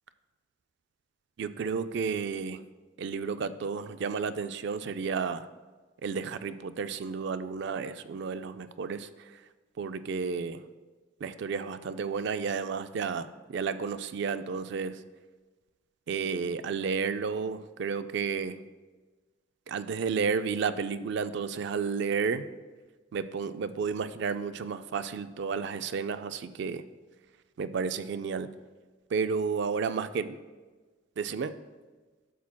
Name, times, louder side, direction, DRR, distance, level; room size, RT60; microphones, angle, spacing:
voice 1, 1.4-2.6 3.0-5.5 6.0-9.3 9.8-10.6 11.2-15.0 16.1-18.6 19.7-22.5 23.1-26.9 27.6-28.5 29.1-30.2 31.2-31.5, right 5 dB, 60° right, 11 dB, 0.3 m, -32 dB
12.0 x 7.1 x 2.2 m, 1.3 s
head